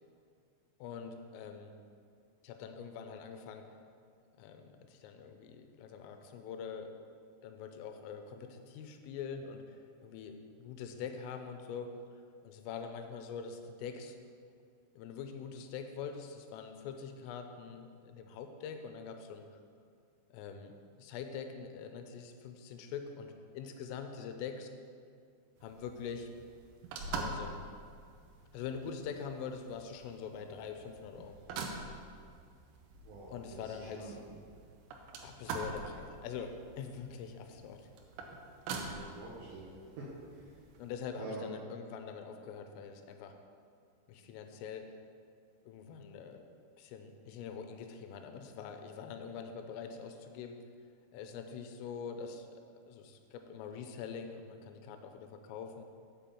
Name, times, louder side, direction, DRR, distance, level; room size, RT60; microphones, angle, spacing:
voice 1, 0.8-1.7 2.4-3.6 4.4-6.9 7.4-11.9 12.4-14.2 15.0-19.4 20.3-20.7 21.0-24.7 25.6-26.3 27.1-27.6 28.5-31.4 33.3-34.2 35.2-37.9 38.7-38.8 40.8-43.3 44.1-44.9 45.6-46.4 46.8-50.6 51.1-55.8, left 6 dB, 85° left, 6 dB, 3.2 m, -44 dB
sound 1, 25.6-40.9, right 3 dB, 85° right, 3.4 m, -45 dB
voice 2, 33.0-34.2 38.9-39.7 40.0-40.6 41.2-41.4, right 2 dB, 70° right, -7 dB, 2.2 m, -46 dB
7.7 x 5.8 x 7.0 m, 2.3 s
omnidirectional pair, 5.8 m